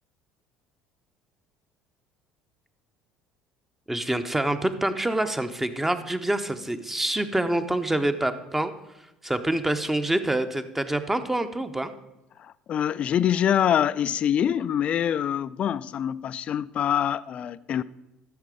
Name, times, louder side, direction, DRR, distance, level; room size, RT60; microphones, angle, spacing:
voice 1, 3.9-8.7 9.2-11.9, right 1 dB, 10° right, 0.9 m, -26 dB
voice 2, 12.4-17.8, left 9 dB, 45° left, 0.4 m, -25 dB
13.0 x 6.6 x 4.9 m
hypercardioid pair, 65°, 3 cm